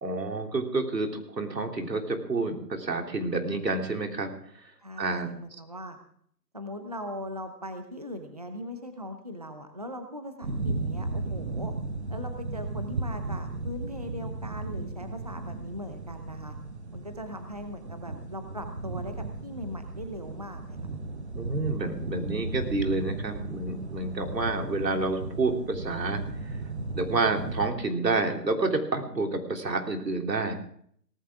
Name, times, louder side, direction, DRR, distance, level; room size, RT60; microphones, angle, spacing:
voice 1, 0.0-4.3 5.0-5.3 21.4-26.6 26.9-30.5, right 3 dB, 85° right, 3 dB, 3.6 m, -29 dB
voice 2, 4.8-6.0 6.5-11.7 12.1-16.6 16.9-20.8, equal, 25° right, 6 dB, 0.8 m, -40 dB
sound 1, 10.4-27.7, right 3 dB, 40° right, 1.2 m, -35 dB
18.0 x 15.0 x 3.7 m, 0.63 s
hypercardioid pair, 175°, 48 cm